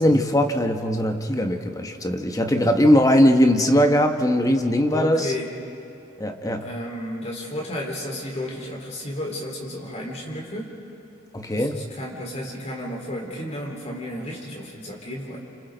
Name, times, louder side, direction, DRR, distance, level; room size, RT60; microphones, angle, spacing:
voice 1, 0.0-5.3 6.2-6.7 11.3-11.8, equal, 20° left, 5 dB, 1.1 m, -20 dB
voice 2, 4.9-5.5 6.6-10.7 11.5-15.4, left 1 dB, 35° left, -2 dB, 4.2 m, -33 dB
30.0 x 27.5 x 4.0 m, 2.8 s
head